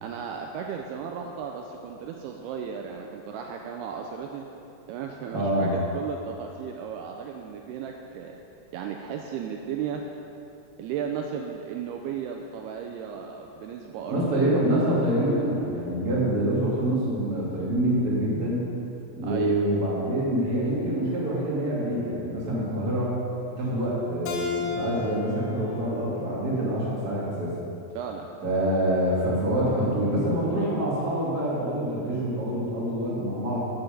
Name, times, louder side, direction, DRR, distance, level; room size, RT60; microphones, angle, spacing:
voice 1, 0.0-4.5 4.9-8.4 8.7-10.0 10.8-14.6 19.2-19.6 27.9-28.3, right 7 dB, 80° right, 2 dB, 2.5 m, -35 dB
voice 2, 5.3-5.7 14.1-18.6 19.1-23.1 23.5-27.5 28.4-33.7, right 1 dB, 25° right, -7 dB, 2.3 m, -26 dB
Keyboard (musical), 24.3-27.5, left 5 dB, 75° left, 2.2 m, -35 dB
13.0 x 7.0 x 5.3 m, 2.7 s
omnidirectional pair, 4.8 m